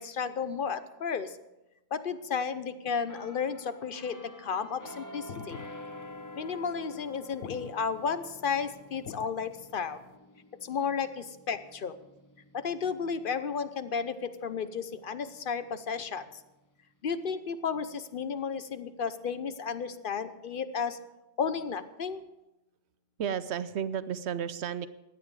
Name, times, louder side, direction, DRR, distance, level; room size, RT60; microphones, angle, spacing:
voice 1, 0.0-1.4 1.9-5.7 6.4-10.0 10.6-11.9 12.5-16.3 17.0-21.0 21.4-22.2, left 6 dB, 50° left, 12 dB, 0.9 m, -33 dB
sound 1, 3.1-14.6 15.1-15.3, left 1 dB, 20° left, 0.7 m, -49 dB
sound 2, 5.2-10.2, left 9 dB, 75° left, 1.0 m, -46 dB
voice 2, 23.2-24.9, right 8 dB, 70° right, 14 dB, 0.9 m, -33 dB
16.5 x 11.0 x 4.8 m, 0.97 s
omnidirectional pair, 1.2 m